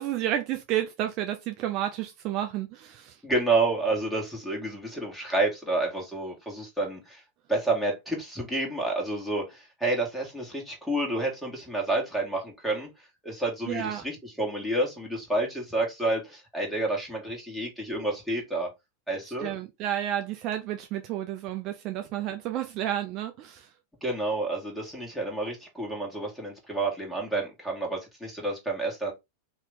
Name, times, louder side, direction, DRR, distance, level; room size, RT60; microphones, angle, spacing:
voice 1, 0.0-3.2 13.7-14.0 19.2-23.7, right 11 dB, 45° right, 0.6 m, -31 dB
voice 2, 3.2-7.2 7.5-12.9 13.2-18.7 19.1-19.5 24.0-29.1, right 2 dB, ahead, 1.8 m, -29 dB
3.0 x 2.8 x 3.5 m
hypercardioid pair, 105°, 0 cm